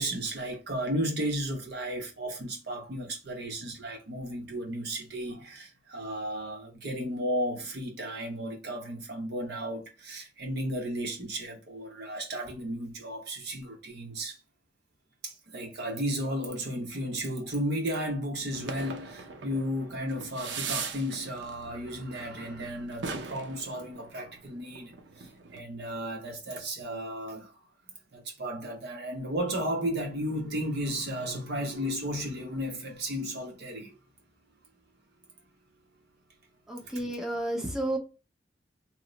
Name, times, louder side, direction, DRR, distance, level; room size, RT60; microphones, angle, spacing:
voice 1, 0.0-14.4 15.2-27.6 28.1-34.0 36.9-37.0, equal, 65° right, 0.9 m, -34 dB
sound 1, 18.5-25.6, right 5 dB, 85° right, 0.5 m, -40 dB
voice 2, 36.7-38.0, right 1 dB, 5° right, 0.6 m, -31 dB
3.0 x 2.0 x 3.9 m
head